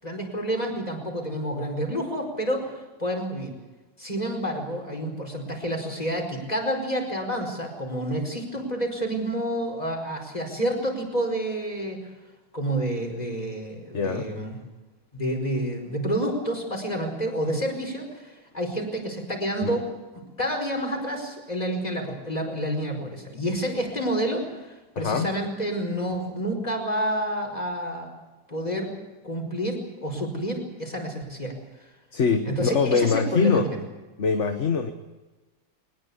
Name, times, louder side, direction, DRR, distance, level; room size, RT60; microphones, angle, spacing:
voice 1, 0.0-3.5 4.0-12.0 12.5-14.5 15.1-19.8 20.4-28.1 28.5-28.9 29.2-31.6 32.4-33.7, right 1 dB, 20° left, 3 dB, 4.8 m, -29 dB
voice 2, 13.9-14.3 19.6-19.8 24.9-25.3 32.1-33.7 34.2-34.9, left 5 dB, 45° left, 7 dB, 1.3 m, -23 dB
22.0 x 20.0 x 8.3 m, 1.2 s
omnidirectional pair, 2.0 m